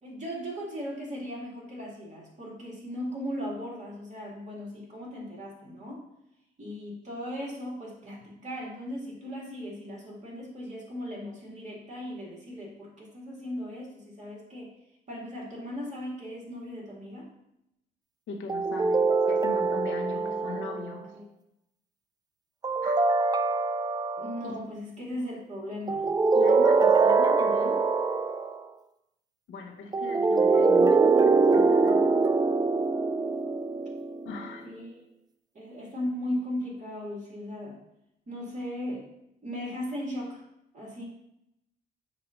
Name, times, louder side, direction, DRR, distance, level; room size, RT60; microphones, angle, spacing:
voice 1, 0.0-6.1 6.6-14.7 15.1-17.3 20.1-20.8 21.1-21.3 24.2-26.1 34.6-35.0 35.5-37.8 38.3-39.1 39.4-40.4 40.7-41.0, left 1 dB, 35° right, -4 dB, 2.3 m, -37 dB
voice 2, 18.3-21.1 22.8-23.0 24.4-24.6 26.3-27.9 29.5-32.2 34.2-34.8, left 4 dB, 80° left, 3 dB, 1.1 m, -39 dB
sound 1, 18.5-21.0 22.6-24.5 25.9-28.6 29.9-34.5, right 4 dB, 20° right, 0.3 m, -23 dB
6.8 x 2.8 x 5.7 m, 0.81 s
cardioid pair, 90°, 20 cm